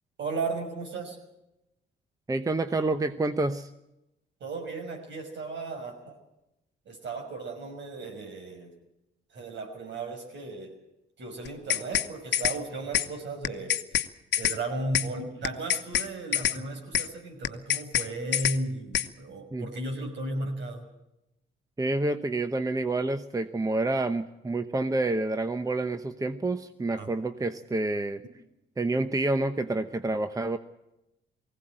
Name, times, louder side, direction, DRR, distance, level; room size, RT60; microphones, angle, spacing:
voice 1, 0.2-1.2 4.4-6.2 6.9-8.7 9.3-10.8 11.2-13.8 14.4-20.8 27.0-27.1, right 2 dB, 65° right, 3 dB, 5.9 m, -35 dB
voice 2, 2.3-3.7 19.5-19.7 21.8-28.2 28.8-30.6, right 2 dB, 15° right, 10 dB, 0.9 m, -28 dB
sound 1, 11.5-12.1 12.3-12.6 12.9-13.1 13.4-14.1 14.3-14.6 14.9-15.1 15.4-16.1 16.3-16.6 16.9-17.1 17.4-18.1 18.3-18.6 18.9-19.1, left 10 dB, 60° left, 1.1 m, -26 dB
19.5 x 16.5 x 8.9 m, 0.90 s
cardioid pair, 90°, 20 cm